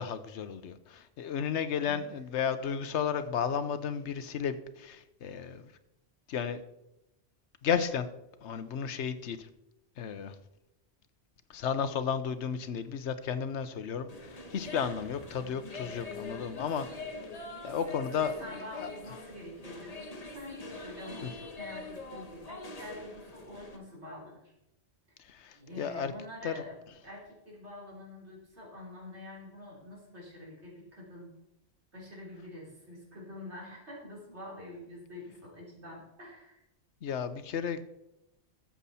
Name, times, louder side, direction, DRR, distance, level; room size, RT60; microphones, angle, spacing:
voice 1, 0.0-5.7 6.3-6.6 7.6-8.1 8.4-9.5 10.0-10.3 11.5-16.9 17.6-18.9 21.2-21.3 25.2-26.1 26.4-26.5 37.0-37.8, left 7 dB, 80° left, 11 dB, 1.1 m, -33 dB
sound 1, 14.1-23.8, left 2 dB, 35° left, 1.2 m, -44 dB
voice 2, 18.1-24.5 25.5-26.8 27.0-31.3 31.9-36.6, left 1 dB, 75° right, -3 dB, 4.0 m, -46 dB
13.5 x 7.4 x 4.2 m, 0.89 s
omnidirectional pair, 1.2 m